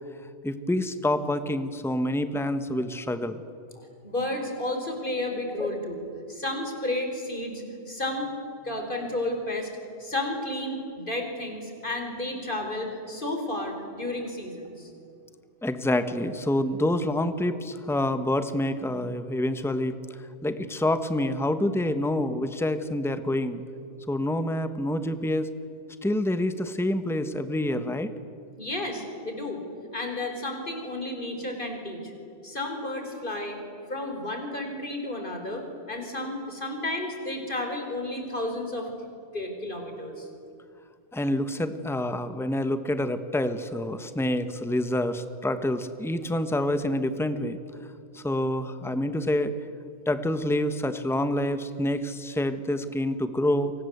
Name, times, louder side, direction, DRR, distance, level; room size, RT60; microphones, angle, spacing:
voice 1, 0.4-3.4 5.3-5.8 15.6-20.0 20.4-23.6 24.1-25.5 26.0-28.1 41.1-47.6 48.1-49.5 50.1-53.7, left 1 dB, ahead, 10 dB, 1.3 m, -27 dB
voice 2, 4.0-6.0 6.3-8.3 8.6-9.7 10.0-14.9 28.6-29.6 29.9-32.1 32.4-33.6 33.9-38.9 39.3-40.3, left 1 dB, 45° left, 4 dB, 5.0 m, -32 dB
29.5 x 25.0 x 8.1 m, 2.5 s
omnidirectional pair, 1.3 m